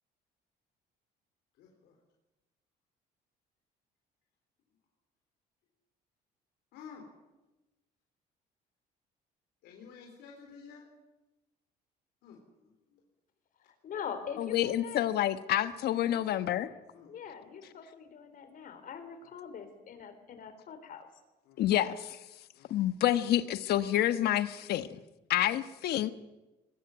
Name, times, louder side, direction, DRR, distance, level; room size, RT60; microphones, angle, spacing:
voice 1, 1.6-2.0 6.7-7.1 9.6-10.9 12.2-13.0 16.9-17.5 19.2-20.0 21.4-21.6 22.5-22.7, left 6 dB, 85° left, 1 dB, 4.1 m, -53 dB
voice 2, 13.8-15.0 16.1-16.7 17.1-21.1, left 7 dB, 55° left, 10 dB, 4.1 m, -43 dB
voice 3, 14.4-16.7 21.6-22.2 22.7-24.9 25.3-26.1, left 12 dB, 70° left, 12 dB, 1.2 m, -28 dB
21.0 x 21.0 x 9.2 m, 1.1 s
cardioid pair, 110°, 17 cm